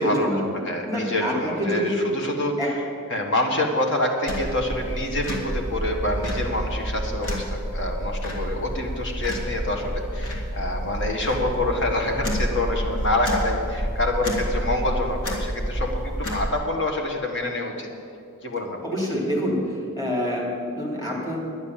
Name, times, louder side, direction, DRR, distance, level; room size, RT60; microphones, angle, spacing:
voice 1, 0.0-0.4 0.9-2.1 2.6-2.7 18.8-19.6 20.0-21.4, equal, 20° left, -2 dB, 3.0 m, -26 dB
voice 2, 0.5-2.6 3.1-17.9 18.4-18.8, left 1 dB, 55° left, 2 dB, 1.6 m, -26 dB
sound 1, 4.3-16.5, equal, 75° left, 2.3 m, -29 dB
10.5 x 9.9 x 7.4 m, 2.4 s
head